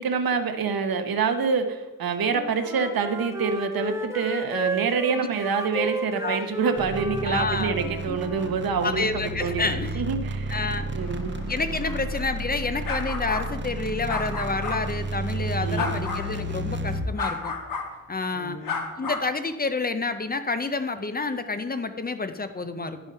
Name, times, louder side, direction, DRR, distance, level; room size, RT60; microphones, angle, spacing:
voice 1, 0.0-9.6 10.0-10.6 10.9-11.4 11.7-11.9 15.6-16.0 18.3-18.8, right 5 dB, 80° right, 7 dB, 1.1 m, -27 dB
Wind instrument woodwind instrument, 2.2-8.6, right 2 dB, 10° right, 0.9 m, -33 dB
sound 1, 6.8-17.2, right 1 dB, 35° right, 0.6 m, -32 dB
voice 2, 7.2-8.2 8.8-10.0 10.5-10.9 11.5-17.5 18.1-18.6 19.0-23.0, left 3 dB, 25° left, 10 dB, 0.5 m, -29 dB
sound 2, 11.0-14.8 15.7-16.3 17.2-17.9 18.6-19.3, left 4 dB, 70° left, 1.7 m, -33 dB
11.0 x 7.0 x 5.5 m, 1.3 s
wide cardioid pair, 160°, 35 cm